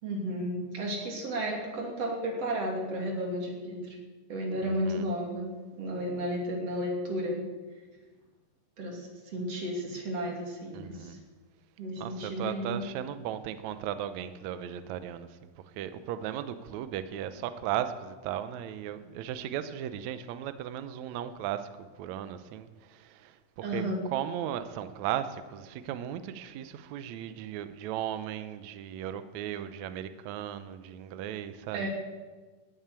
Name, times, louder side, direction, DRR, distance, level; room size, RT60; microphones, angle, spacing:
voice 1, 0.0-3.9 4.3-5.5 5.8-7.4 8.8-11.2 11.8-12.8 23.6-24.1 31.7-31.9, equal, 45° right, 0 dB, 3.4 m, -33 dB
voice 2, 10.7-11.2 12.0-15.3 15.8-21.7 22.0-23.8 24.1-31.9, right 10 dB, 80° right, 11 dB, 1.7 m, -36 dB
13.5 x 9.1 x 9.6 m, 1.4 s
omnidirectional pair, 4.2 m